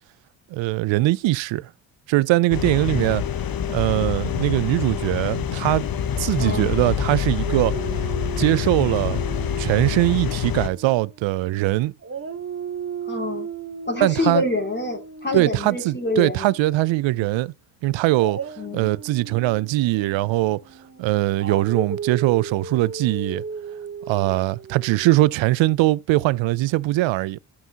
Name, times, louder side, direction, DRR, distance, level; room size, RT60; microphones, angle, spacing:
voice 1, 0.5-1.7 2.1-3.2 3.7-5.8 6.2-7.8 8.4-9.2 9.6-11.9 14.0-14.4 15.3-17.5 17.8-18.4 18.7-20.6 21.0-23.4 24.1-27.4, right 18 dB, 70° right, 0.6 m, -21 dB
sound 1, 2.5-10.7, left 9 dB, 45° left, 1.0 m, -26 dB
voice 2, 6.4-6.7 13.1-13.5 13.8-16.5 17.1-17.3 18.6-18.9, left 2 dB, 20° left, 2.8 m, -26 dB
Dog, 7.5-11.6 12.0-17.0 18.1-25.1, right 6 dB, 30° right, 1.1 m, -36 dB
11.5 x 5.6 x 2.9 m
supercardioid pair, 60°, 47 cm